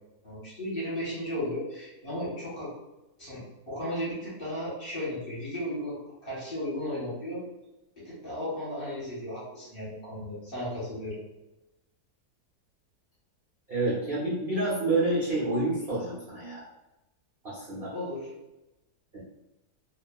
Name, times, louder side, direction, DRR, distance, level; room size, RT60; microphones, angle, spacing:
voice 1, 0.2-2.7 3.2-3.4 3.7-6.0 6.2-7.4 8.0-11.2 17.9-18.3, left 1 dB, 40° left, -9 dB, 1.1 m, -35 dB
voice 2, 13.7-16.6 17.4-17.9 19.1-19.2, right 2 dB, 60° right, -8 dB, 0.5 m, -28 dB
2.8 x 2.3 x 2.2 m, 1.0 s
omnidirectional pair, 1.8 m